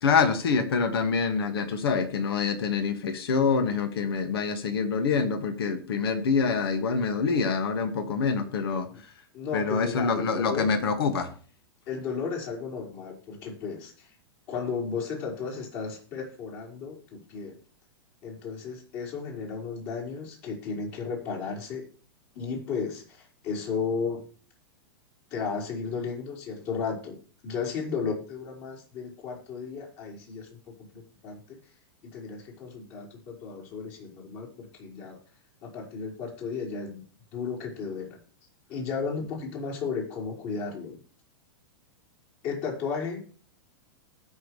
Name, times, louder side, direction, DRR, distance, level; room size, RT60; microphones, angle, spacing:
voice 1, 0.0-8.9 9.5-11.3, left 5 dB, 80° left, 7 dB, 2.2 m, -26 dB
voice 2, 9.3-10.8 11.9-14.2 14.5-17.6 18.2-21.9 22.3-24.2 25.3-31.6 32.0-35.2 35.6-37.0 37.3-38.2 38.7-41.0 42.4-43.3, left 5 dB, 45° left, -1 dB, 5.6 m, -34 dB
19.5 x 6.6 x 3.4 m, 0.42 s
hypercardioid pair, 145°, 13 cm